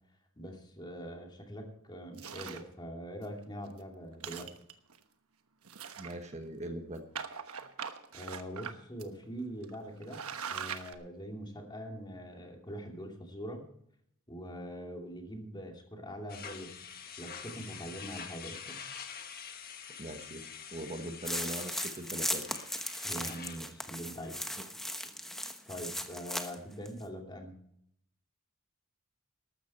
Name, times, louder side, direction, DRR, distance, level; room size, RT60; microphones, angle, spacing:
voice 1, 0.4-4.6 8.1-10.2 10.5-13.6 14.3-16.8 17.2-18.8 23.0-24.4 25.7-27.6, equal, 20° left, 2 dB, 2.6 m, -43 dB
sound 1, 2.2-2.7 3.2-3.3 3.7-3.8 4.1-5.0 5.6-6.5 7.1-8.7 9.0-9.1 9.6-9.8 10.0-10.9, right 7 dB, 85° right, 1.2 m, -41 dB
voice 2, 6.0-7.0 20.0-22.5 24.6-24.7, right 1 dB, 35° right, 5 dB, 1.3 m, -41 dB
sound 2, 16.3-23.6, left 7 dB, 45° left, 1.4 m, -46 dB
sound 3, 21.2-26.6 26.9-27.0, equal, ahead, 1.1 m, -37 dB
13.5 x 13.0 x 4.3 m, 0.70 s
head